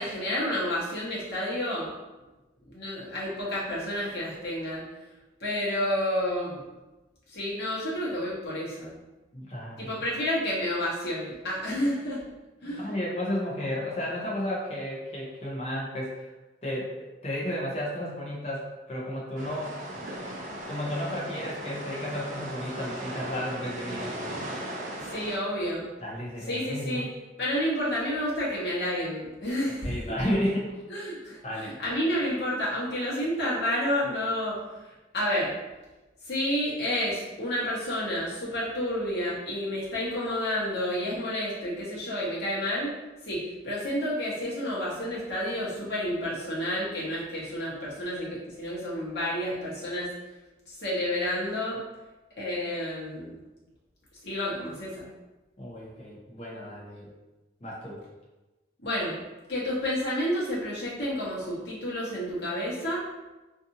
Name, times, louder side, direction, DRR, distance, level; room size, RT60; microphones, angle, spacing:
voice 1, 0.0-1.9 2.6-4.8 5.4-6.6 7.3-9.0 9.8-12.3 12.6-12.9 25.0-25.9 26.5-27.1 27.4-30.0 30.9-34.6 35.1-35.5 36.2-42.9 43.2-50.1 50.7-51.8 52.4-53.3 54.2-55.1 58.8-59.2 59.5-63.0, equal, 70° left, -7 dB, 1.0 m, -30 dB
voice 2, 9.3-9.9 12.6-16.3 16.6-19.8 20.5-24.1 26.0-27.1 29.8-30.8 31.4-31.8 55.6-57.1 57.6-58.0, equal, 35° left, -4 dB, 0.6 m, -33 dB
sound 1, 19.4-25.4, right 1 dB, 45° right, 0.4 m, -37 dB
2.7 x 2.5 x 2.6 m, 1.1 s
head